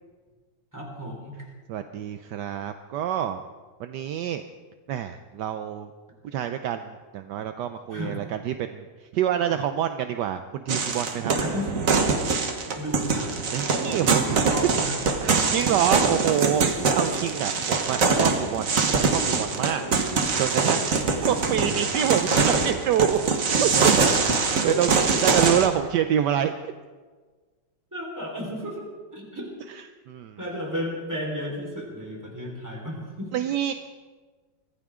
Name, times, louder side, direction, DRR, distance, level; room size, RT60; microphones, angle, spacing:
voice 1, 0.7-1.4 7.9-8.2 11.4-11.8 12.3-13.3 13.7-14.1 14.5-15.3 24.6-24.8 27.9-28.9 29.1-29.5 30.4-33.3, equal, 10° right, -2 dB, 4.1 m, -34 dB
voice 2, 1.7-3.4 3.8-4.4 4.9-5.9 6.2-8.8 9.1-11.3 13.5-14.5 15.2-16.7 16.9-19.8 20.4-23.2 23.5-23.9 24.3-24.4 24.6-24.9 25.2-26.7 29.8-30.4 33.3-33.7, right 10 dB, 70° right, 8 dB, 1.0 m, -27 dB
sound 1, 10.7-25.7, right 4 dB, 45° right, 1.5 m, -23 dB
24.0 x 15.5 x 3.7 m, 1.4 s
omnidirectional pair, 2.4 m